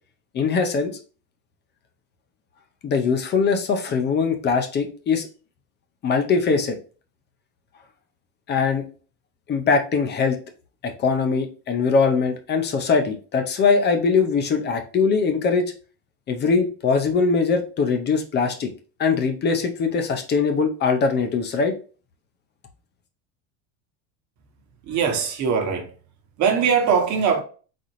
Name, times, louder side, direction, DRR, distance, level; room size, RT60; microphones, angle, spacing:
voice 1, 0.3-0.9 2.8-5.3 6.0-6.8 8.5-8.8 9.5-10.4 10.8-15.6 16.3-18.7 19.0-21.7, left 5 dB, 25° left, 0.6 m, -21 dB
voice 2, 24.8-25.9 26.4-27.4, right 6 dB, 40° right, 1.1 m, -21 dB
4.2 x 3.7 x 3.1 m
cardioid pair, 150°, 44 cm